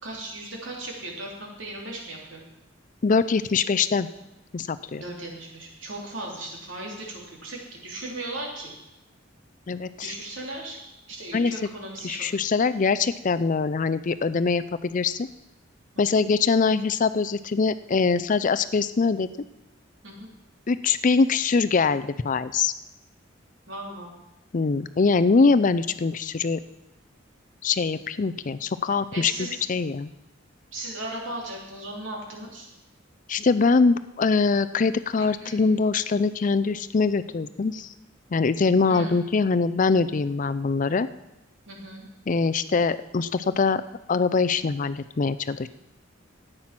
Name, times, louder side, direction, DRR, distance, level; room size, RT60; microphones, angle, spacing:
voice 1, 0.0-2.4 5.0-8.7 10.0-10.8 11.1-12.2 15.9-16.2 20.0-20.3 23.7-24.1 29.1-29.6 30.7-32.7 35.4-35.6 38.9-39.2 41.7-42.0, right 1 dB, 70° right, 0 dB, 3.2 m, -37 dB
voice 2, 3.0-4.1 4.5-5.0 9.7-10.1 11.3-11.5 12.0-15.2 16.0-19.3 20.7-22.7 24.5-26.6 27.6-29.3 29.7-30.1 33.3-37.9 38.3-41.1 42.3-43.8 44.1-45.7, left 4 dB, 40° left, 13 dB, 0.4 m, -23 dB
13.0 x 9.0 x 5.9 m, 0.92 s
head